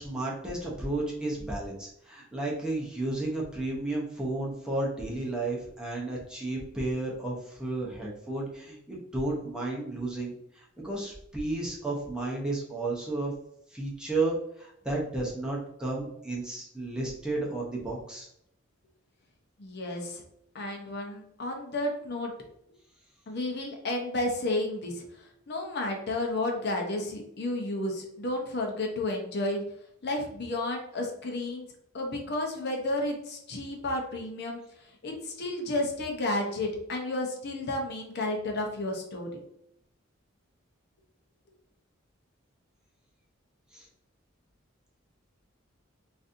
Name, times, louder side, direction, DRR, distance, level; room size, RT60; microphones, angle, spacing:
voice 1, 0.0-13.3 13.7-18.3 43.7-43.9, right 2 dB, 5° right, -4 dB, 0.7 m, -33 dB
voice 2, 19.6-20.2 20.5-22.3 23.3-25.0 25.5-29.6 30.0-31.6 31.9-34.6 35.0-39.4, left 2 dB, 55° left, 1 dB, 0.6 m, -32 dB
4.0 x 2.5 x 2.5 m, 0.74 s
head